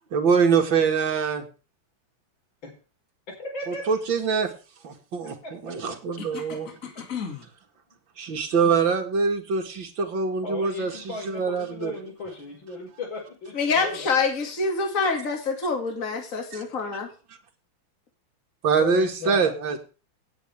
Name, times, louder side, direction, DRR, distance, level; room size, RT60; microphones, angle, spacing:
voice 1, 0.1-1.5 3.7-4.5 4.8-5.3 5.6-6.7 8.2-11.9 16.5-16.6 18.6-19.8, right 5 dB, 70° right, 4 dB, 2.7 m, -24 dB
voice 2, 3.4-3.9 10.4-14.1 18.8-19.5, left 3 dB, 70° left, -1 dB, 5.6 m, -36 dB
voice 3, 7.0-7.4 13.5-17.1, left 4 dB, 40° left, 4 dB, 2.7 m, -26 dB
17.5 x 9.0 x 3.5 m, 0.35 s
omnidirectional pair, 2.2 m